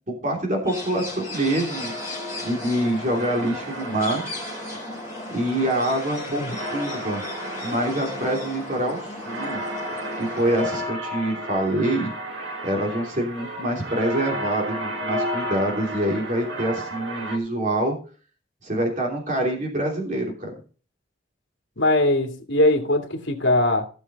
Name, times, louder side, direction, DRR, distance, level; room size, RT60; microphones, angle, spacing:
voice 1, 0.1-1.9 2.4-4.2 5.3-6.4 6.7-7.2 7.6-9.6 10.2-12.1 12.6-17.9 18.6-20.5, right 1 dB, 40° right, 3.0 m, -25 dB
sound 1, 0.6-10.8, left 2 dB, 15° right, 4.3 m, -36 dB
sound 2, 1.3-17.4, equal, 70° right, 2.0 m, -33 dB
voice 2, 21.8-23.9, left 1 dB, 75° left, 2.5 m, -21 dB
17.0 x 6.4 x 4.1 m
head